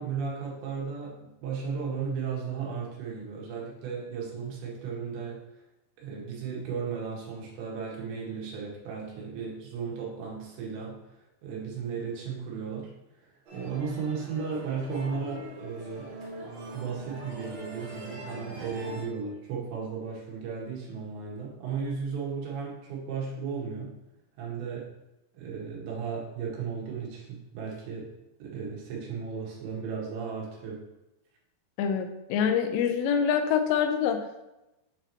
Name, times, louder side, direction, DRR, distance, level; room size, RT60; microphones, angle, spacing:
voice 1, 0.0-5.4 6.0-12.9 13.2-16.1 16.7-24.0 24.4-24.9 25.3-28.1 28.4-30.8, right 5 dB, 85° right, -3 dB, 3.6 m, -35 dB
sound 1, 13.5-19.1, right 1 dB, 70° right, 3.5 m, -43 dB
voice 2, 31.8-34.2, left 7 dB, 90° left, 6 dB, 2.9 m, -25 dB
8.4 x 3.0 x 3.9 m, 0.94 s
omnidirectional pair, 4.9 m